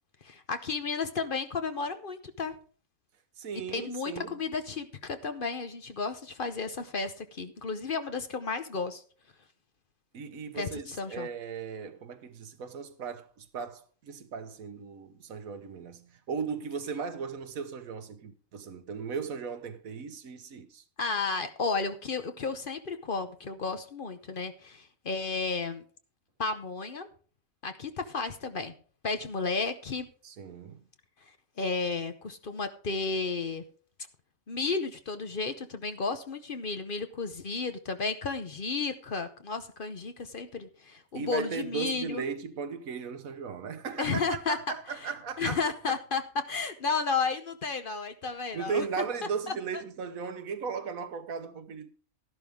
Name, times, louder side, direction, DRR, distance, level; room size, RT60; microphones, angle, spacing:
voice 1, 0.2-2.6 3.7-9.0 10.5-11.3 21.0-25.8 26.4-27.1 27.6-28.7 29.0-30.1 31.6-33.6 34.5-42.2 44.0-44.6 45.4-46.2 46.5-48.8, left 4 dB, 45° left, 0.9 m, -33 dB
voice 2, 3.4-4.4 10.1-20.8 30.2-30.8 41.1-45.6 45.9-46.0 48.5-51.9, right 6 dB, 85° right, 1.4 m, -37 dB
12.5 x 11.5 x 3.6 m
omnidirectional pair, 1.4 m